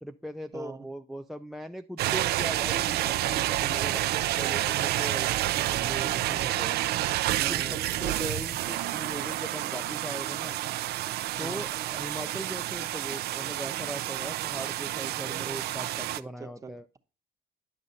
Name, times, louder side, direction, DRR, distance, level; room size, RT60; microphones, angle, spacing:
voice 1, 0.0-4.0 4.4-5.3 5.5-6.8 7.5-10.6 11.4-16.8, equal, ahead, 0.4 m, -39 dB
voice 2, 0.5-0.9 3.6-4.0 7.4-7.8 11.4-11.7 16.4-17.0, right 4 dB, 20° right, 0.9 m, -42 dB
sound 1, 2.0-16.2, right 14 dB, 75° right, 0.6 m, -29 dB
11.0 x 7.5 x 4.0 m
cardioid pair, 170°, 16 cm